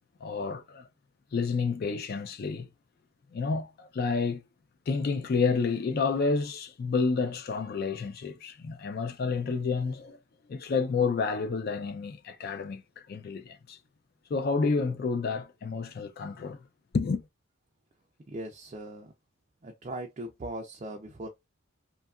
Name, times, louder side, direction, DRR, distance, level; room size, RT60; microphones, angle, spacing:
voice 1, 0.2-0.9 1.3-2.7 3.3-4.4 4.9-10.2 10.5-13.8 14.3-16.6 16.9-17.2, left 4 dB, 45° left, 0.3 m, -30 dB
voice 2, 18.3-19.1 19.6-21.3, right 1 dB, 30° right, 0.3 m, -39 dB
2.7 x 2.3 x 2.3 m
head